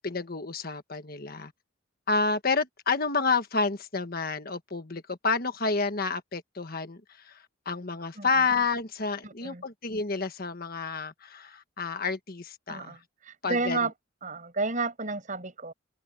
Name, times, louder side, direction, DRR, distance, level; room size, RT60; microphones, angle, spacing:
voice 1, 0.0-1.5 2.1-13.0 13.4-13.9, left 4 dB, 45° left, 1.4 m, -30 dB
voice 2, 9.2-9.6 12.7-13.9 14.2-15.7, right 3 dB, 40° right, 6.1 m, -31 dB
open air
head